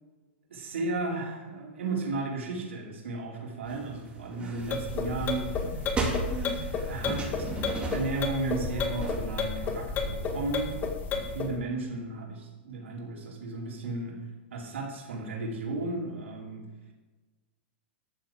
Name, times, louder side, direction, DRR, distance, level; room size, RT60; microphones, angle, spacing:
voice 1, 0.5-5.8 6.9-7.5 7.9-10.8 11.1-16.7, right 3 dB, 80° right, -1 dB, 4.3 m, -34 dB
sound 1, 3.6-9.2, right 2 dB, 15° right, 3.8 m, -36 dB
sound 2, 4.6-11.5, left 4 dB, 25° left, 2.0 m, -32 dB
12.0 x 8.6 x 7.7 m, 1.2 s
hypercardioid pair, 130°, 7 cm